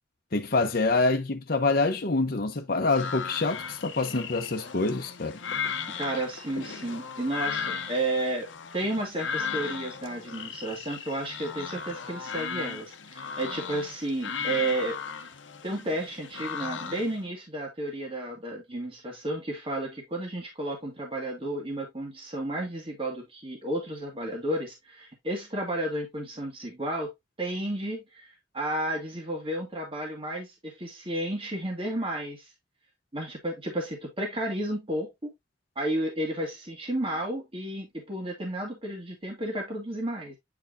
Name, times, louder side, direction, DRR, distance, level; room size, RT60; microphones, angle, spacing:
voice 1, 0.3-5.4, left 3 dB, 55° left, 0.9 m, -26 dB
sound 1, 2.9-17.2, left 6 dB, 90° left, 0.9 m, -36 dB
voice 2, 5.9-15.3 15.6-27.1 27.4-28.3 28.5-32.5 33.1-35.3 35.8-40.4, right 1 dB, 30° right, 2.0 m, -32 dB
8.7 x 4.5 x 2.6 m
head